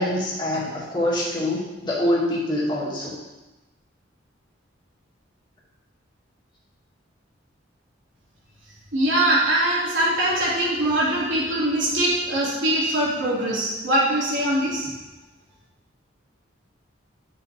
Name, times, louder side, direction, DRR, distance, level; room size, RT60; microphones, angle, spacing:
voice 1, 0.0-3.2, left 1 dB, 25° left, -6 dB, 2.3 m, -25 dB
voice 2, 8.9-14.9, right 1 dB, 75° right, -6 dB, 2.9 m, -22 dB
10.5 x 6.8 x 3.5 m, 1.1 s
head